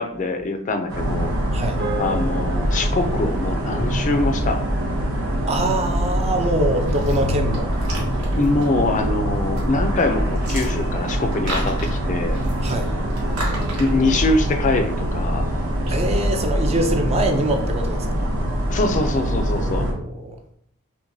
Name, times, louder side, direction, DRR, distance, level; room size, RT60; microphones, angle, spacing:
voice 1, 0.0-1.3 2.0-4.6 8.4-12.4 13.8-15.5 18.7-19.9, left 2 dB, 35° left, 6 dB, 0.4 m, -23 dB
sound 1, 0.9-19.9, equal, 65° right, 0.8 m, -23 dB
sound 2, 1.8-6.3, right 2 dB, 50° right, 1.5 m, -37 dB
voice 2, 5.5-7.7 12.6-12.9 15.9-18.2 19.6-20.2, right 1 dB, 30° right, 5 dB, 0.4 m, -24 dB
sound 3, 6.8-16.0, right 1 dB, 80° right, 1.3 m, -36 dB
5.7 x 2.2 x 2.6 m, 0.71 s
head